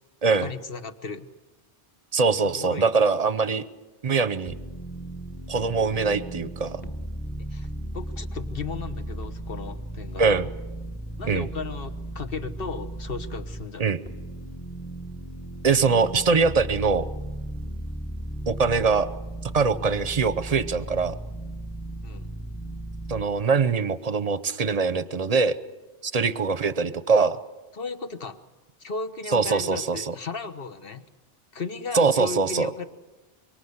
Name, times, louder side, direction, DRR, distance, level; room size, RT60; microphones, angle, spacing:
voice 1, 0.4-1.3 2.4-3.0 7.5-7.7 7.9-10.3 11.2-14.0 22.0-22.3 27.7-28.4 28.8-31.1 31.5-32.9, left 4 dB, 50° left, 7 dB, 1.4 m, -35 dB
voice 2, 2.1-3.6 4.0-4.5 5.5-6.8 10.2-10.5 11.3-11.5 13.8-14.0 15.6-17.1 18.5-19.1 19.4-21.2 23.1-25.6 26.0-27.4 29.3-30.1 31.9-32.7, right 4 dB, 35° right, 14 dB, 0.9 m, -23 dB
sound 1, 4.5-13.6 14.0-23.2, right 1 dB, 10° left, 1.1 m, -36 dB
25.0 x 23.0 x 8.1 m, 1.1 s
omnidirectional pair, 1.2 m